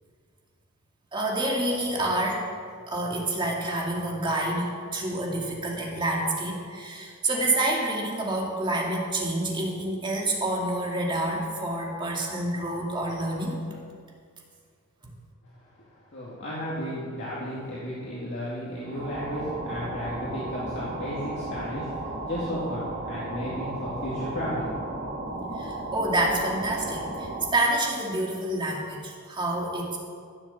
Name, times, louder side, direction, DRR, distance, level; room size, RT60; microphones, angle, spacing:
voice 1, 1.1-2.5 2.9-13.6 15.0-15.1 25.5-30.0, right 1 dB, 25° right, -1 dB, 2.2 m, -28 dB
voice 2, 15.8-25.1, equal, 60° left, -7 dB, 2.4 m, -34 dB
sound 1, 18.8-27.7, right 2 dB, 50° right, 1.9 m, -35 dB
15.0 x 7.1 x 7.2 m, 2.1 s
head